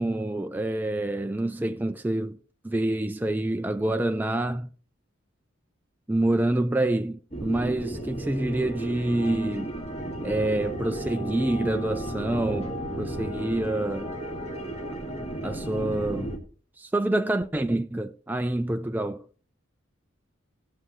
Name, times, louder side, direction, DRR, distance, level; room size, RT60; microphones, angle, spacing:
voice 1, 0.0-2.4 2.6-4.7 6.1-9.7 10.2-14.2 15.4-16.4 16.8-19.2, right 1 dB, 10° right, 0.4 m, -27 dB
sound 1, 7.3-16.4, right 1 dB, 30° left, 2.3 m, -34 dB
18.0 x 7.5 x 3.1 m
head